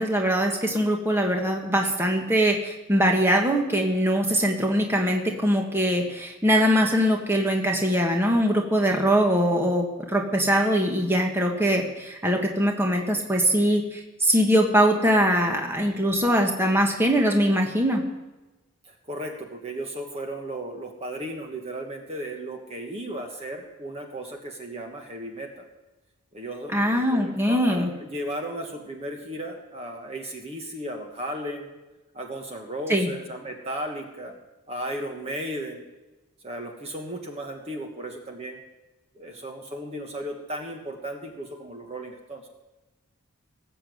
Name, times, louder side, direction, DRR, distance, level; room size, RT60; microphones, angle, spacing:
voice 1, 0.0-18.0 26.7-27.9 32.9-33.1, equal, 10° right, 1 dB, 1.5 m, -22 dB
voice 2, 18.8-25.6 26.3-31.7 32.1-34.4 34.7-35.8 36.4-38.6 39.1-42.5, right 1 dB, 30° right, 3 dB, 1.4 m, -35 dB
18.5 x 6.9 x 7.9 m, 1.1 s
head